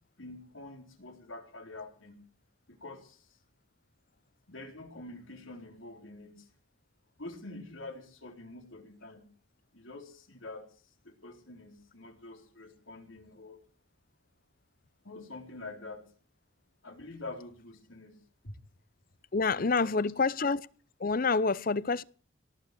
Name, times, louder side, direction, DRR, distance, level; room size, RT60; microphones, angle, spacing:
voice 1, 0.2-2.2 2.7-3.3 4.5-6.5 7.2-9.3 9.7-10.7 11.0-13.6 15.0-16.0 16.8-18.2 18.4-18.5 19.6-20.0, left 2 dB, 80° left, 3.9 m, -46 dB
voice 2, 19.3-20.7 21.0-22.0, left 4 dB, 45° left, 0.6 m, -27 dB
18.5 x 8.0 x 8.3 m
head